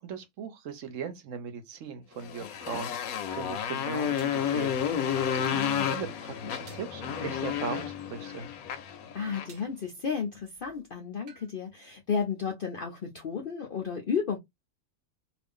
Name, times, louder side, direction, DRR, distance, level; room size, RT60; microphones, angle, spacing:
voice 1, 0.0-4.8 5.3-8.5, right 6 dB, 65° right, 1.0 m, -39 dB
Motorcycle, 2.2-9.6, left 8 dB, 75° left, 1.0 m, -31 dB
sound 1, 4.2-4.5 6.7-7.0 9.5-9.8 11.3-11.5, right 6 dB, 90° right, 1.3 m, -53 dB
voice 2, 5.5-6.0 9.1-14.4, left 6 dB, 60° left, 0.6 m, -33 dB
2.5 x 2.5 x 3.5 m
omnidirectional pair, 1.5 m